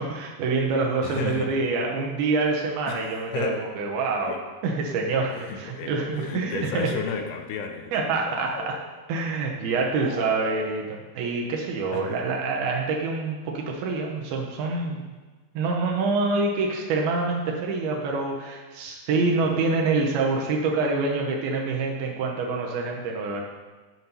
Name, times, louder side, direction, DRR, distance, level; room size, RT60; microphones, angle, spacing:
voice 1, 0.0-4.4 4.6-6.9 7.9-8.8 9.1-15.1 15.6-23.4, right 3 dB, 75° right, 0 dB, 2.5 m, -26 dB
voice 2, 1.0-1.6 2.9-3.7 4.2-4.4 5.3-7.9 11.9-12.2 19.4-19.6, left 6 dB, 80° left, 4 dB, 2.6 m, -33 dB
sound 1, 4.9-5.6 5.9-7.6 7.9-8.0 8.3-9.4 9.9-11.4, left 4 dB, 60° left, 2.5 m, -40 dB
9.4 x 4.3 x 5.3 m, 1.3 s
omnidirectional pair, 4.9 m